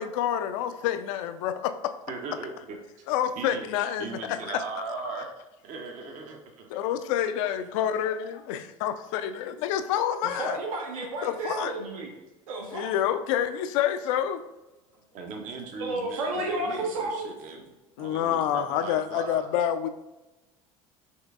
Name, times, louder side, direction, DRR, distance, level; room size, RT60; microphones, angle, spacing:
voice 1, 0.0-1.9 3.1-4.6 5.2-5.3 6.7-10.6 11.2-11.7 12.7-14.4 18.0-19.9, left 10 dB, 65° left, 10 dB, 0.4 m, -28 dB
voice 2, 2.1-2.8 3.4-3.6 4.0-5.3 5.6-6.7 15.1-17.6 18.0-19.5, right 4 dB, 50° right, 3 dB, 0.6 m, -38 dB
voice 3, 10.2-12.1 12.5-13.0 15.8-17.3, right 2 dB, 80° right, 0 dB, 0.8 m, -32 dB
5.4 x 3.1 x 2.4 m, 1.1 s
hypercardioid pair, 75°, 18 cm